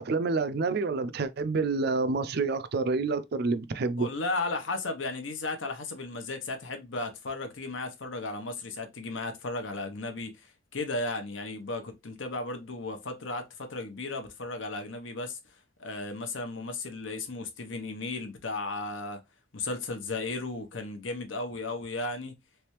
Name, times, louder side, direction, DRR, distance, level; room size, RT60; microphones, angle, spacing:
voice 1, 0.0-4.1, right 3 dB, 55° right, 0.4 m, -28 dB
voice 2, 4.0-15.4 15.8-19.2 19.5-22.3, left 2 dB, 75° left, 0.9 m, -35 dB
3.4 x 3.2 x 3.0 m
head